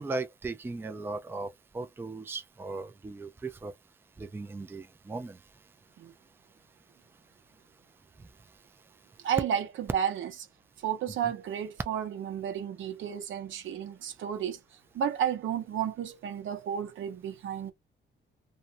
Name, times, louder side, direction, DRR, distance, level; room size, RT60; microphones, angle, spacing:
voice 1, 0.0-3.7 4.2-5.4, right 3 dB, 10° right, 0.4 m, -37 dB
voice 2, 9.2-10.3 10.8-14.6 14.9-17.7, right 9 dB, 75° right, 0.8 m, -32 dB
2.5 x 2.2 x 2.7 m
cardioid pair, 125°, 20 cm